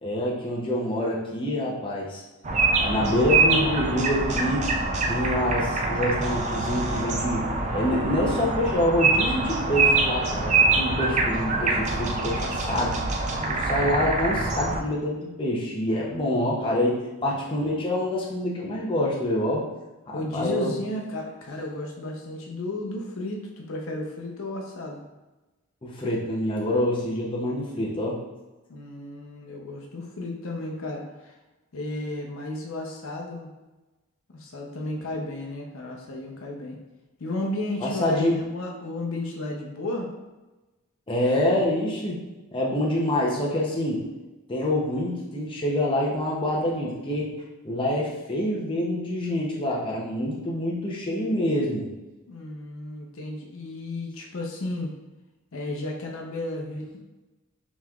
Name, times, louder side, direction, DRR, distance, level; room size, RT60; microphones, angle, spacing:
voice 1, 0.0-2.2 2.8-4.7 5.1-7.5 7.7-13.0 13.5-19.7 20.1-20.7 25.8-28.2 37.8-38.4 41.1-42.2 42.5-44.0 44.5-47.3 47.6-51.9, left 1 dB, 25° left, -4 dB, 0.6 m, -26 dB
sound 1, 2.4-14.8, right 3 dB, 30° right, 0.4 m, -25 dB
voice 2, 13.3-13.7 15.9-16.5 20.1-25.0 28.7-31.3 31.7-33.5 34.3-36.8 37.2-40.1 52.3-54.9 55.5-57.0, left 2 dB, 70° left, 0 dB, 0.6 m, -33 dB
5.4 x 3.0 x 2.3 m, 1.1 s
head